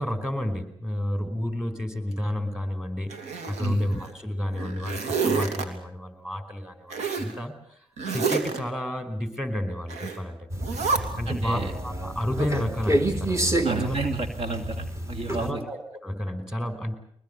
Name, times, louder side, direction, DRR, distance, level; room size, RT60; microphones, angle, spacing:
voice 1, 0.0-3.1 3.5-5.0 5.2-7.8 8.1-10.4 11.2-14.0 15.3-17.0, equal, 5° right, 9 dB, 5.1 m, -31 dB
Zipper (clothing), 3.1-4.1 4.5-5.6 6.9-7.3 8.0-8.6 9.9-10.2 10.6-11.0, right 5 dB, 85° right, 3.1 m, -28 dB
sound 1, 10.5-15.5, right 1 dB, 25° right, 3.2 m, -28 dB
voice 2, 11.3-11.7 13.6-15.6, right 4 dB, 55° right, 6 dB, 2.9 m, -31 dB
23.0 x 20.5 x 8.3 m, 0.69 s
cardioid pair, 60°, 11 cm